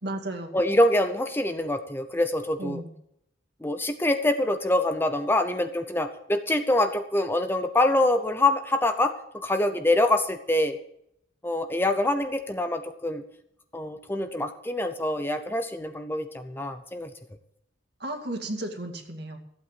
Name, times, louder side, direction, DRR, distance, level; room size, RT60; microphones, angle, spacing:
voice 1, 0.0-0.5 2.6-2.9 18.0-19.4, right 1 dB, 55° right, 4 dB, 2.2 m, -34 dB
voice 2, 0.5-2.8 3.6-10.8 11.4-13.2 13.7-17.1, left 1 dB, 10° left, 8 dB, 0.7 m, -25 dB
15.0 x 8.5 x 7.5 m, 0.76 s
head